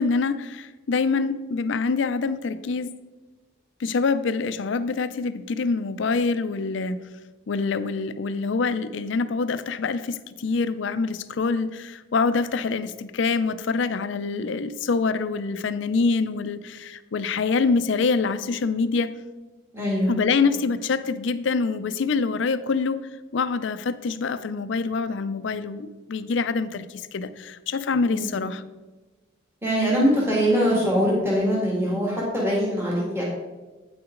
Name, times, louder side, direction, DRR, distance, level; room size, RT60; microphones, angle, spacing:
voice 1, 0.0-3.0 3.8-7.0 7.5-19.1 20.1-23.0 23.3-28.6, left 4 dB, 70° left, 13 dB, 0.4 m, -25 dB
voice 2, 19.7-20.1 28.1-28.3 29.6-33.2, equal, 10° right, -5 dB, 1.7 m, -22 dB
8.9 x 5.9 x 3.8 m, 1.2 s
head